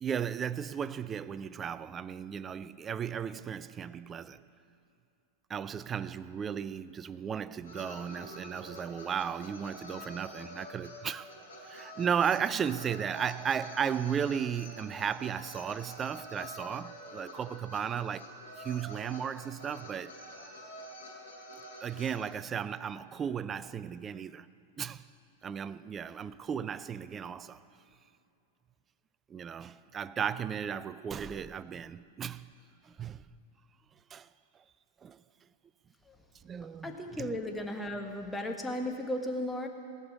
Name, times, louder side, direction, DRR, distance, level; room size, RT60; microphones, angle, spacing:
voice 1, 0.0-4.4 5.5-11.3 11.6-18.3 18.6-20.1 21.8-24.5 24.8-25.1 25.4-27.6 29.3-32.5 32.8-33.2 34.1-34.3 35.0-35.2 36.4-37.4, right 7 dB, 25° right, 0.4 m, -35 dB
sound 1, 7.6-22.2, equal, 80° left, 4.4 m, -47 dB
voice 2, 36.8-39.7, left 1 dB, 5° left, 1.4 m, -35 dB
18.0 x 6.8 x 9.4 m
figure-of-eight pair, 95°, 0 cm